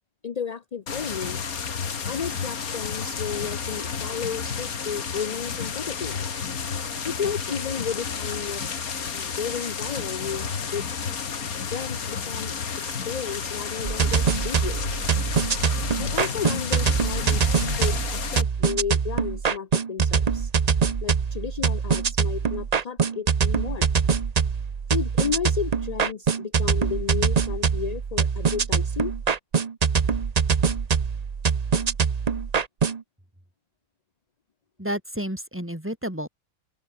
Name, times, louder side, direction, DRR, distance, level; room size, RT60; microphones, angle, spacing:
voice 1, 0.2-1.5 2.1-6.2 7.0-8.6 9.1-10.8 11.7-12.5 12.9-15.1 16.0-20.5 21.0-23.9 24.9-29.1, left 7 dB, 40° left, 0.6 m, -33 dB
sound 1, 0.9-18.4, left 6 dB, 85° left, 2.2 m, -31 dB
sound 2, 13.8-33.0, right 6 dB, 35° right, 0.7 m, -24 dB
voice 2, 34.8-36.3, equal, 10° right, 3.7 m, -30 dB
open air
omnidirectional pair, 1.5 m